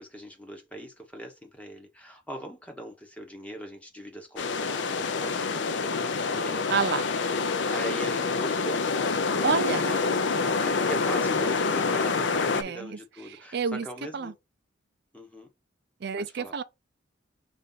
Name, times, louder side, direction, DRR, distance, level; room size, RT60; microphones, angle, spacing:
voice 1, 0.0-6.7 7.5-8.9 9.5-14.3 15.1-15.5 16.2-16.5, right 1 dB, 5° left, 1.0 m, -41 dB
sound 1, 4.4-12.6, left 4 dB, 65° left, 0.5 m, -27 dB
voice 2, 6.7-7.1 9.4-9.8 12.5-13.0 13.5-13.9 14.1-14.3 16.0-16.6, right 6 dB, 55° right, 0.4 m, -28 dB
5.3 x 2.6 x 3.9 m
head